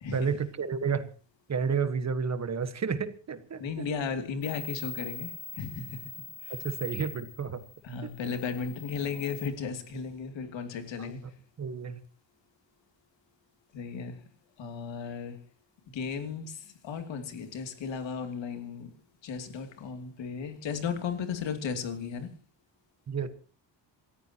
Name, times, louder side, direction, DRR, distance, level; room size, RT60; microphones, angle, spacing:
voice 1, 0.1-1.1 1.5-3.6 6.6-7.6 8.2-8.3 11.0-11.1 11.6-12.0 23.1-23.3, right 6 dB, 35° right, 1.5 m, -31 dB
voice 2, 3.6-6.0 6.4-6.5 7.8-11.3 13.7-14.2 14.6-15.4 15.9-18.9 19.2-22.3, left 6 dB, 75° left, 2.8 m, -35 dB
sound 1, 4.4-9.5, left 5 dB, 35° left, 2.6 m, -43 dB
27.5 x 14.0 x 2.9 m
wide cardioid pair, 160°, 45 cm